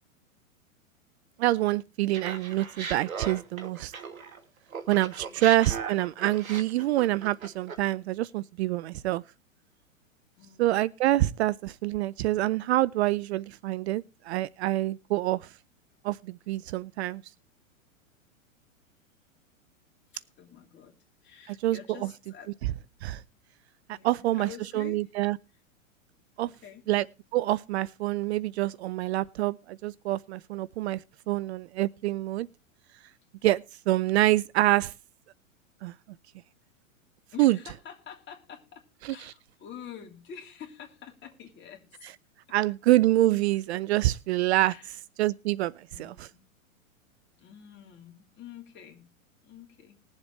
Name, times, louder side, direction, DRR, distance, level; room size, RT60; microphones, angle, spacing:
voice 1, 1.4-3.9 4.9-9.2 10.6-15.5 16.0-17.2 21.5-21.8 23.0-23.2 23.9-25.4 26.4-26.5 26.9-27.0 27.3-31.0 31.3-32.5 33.4-34.9 35.8-35.9 37.4-37.6 39.0-39.2 42.5-44.7 45.2-46.3, right 16 dB, 55° right, 0.5 m, -26 dB
Laughter, 2.1-4.4 4.7-7.9, right 6 dB, 90° right, 1.7 m, -38 dB
voice 2, 10.3-10.7 15.9-16.0 20.1-22.5 23.9-25.1 26.4-26.8 33.1-33.3 37.3-42.1 44.6-45.0 45.9-46.5 47.4-49.1 49.4-50.0, left 8 dB, 30° left, 3.2 m, -47 dB
20.0 x 7.3 x 3.3 m
hypercardioid pair, 115°, 40 cm